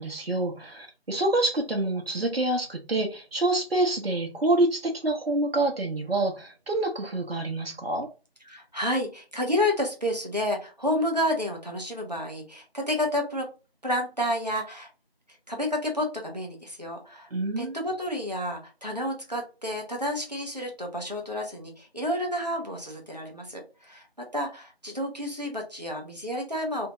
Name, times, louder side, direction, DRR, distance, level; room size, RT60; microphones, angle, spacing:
voice 1, 0.0-8.1 17.3-17.8, right 2 dB, 75° right, 2 dB, 0.9 m, -27 dB
voice 2, 8.4-13.5 13.8-14.9 15.5-17.3 17.6-26.9, left 1 dB, 40° right, 1 dB, 0.8 m, -30 dB
2.7 x 2.3 x 3.0 m, 0.32 s
figure-of-eight pair, 180°, 30 cm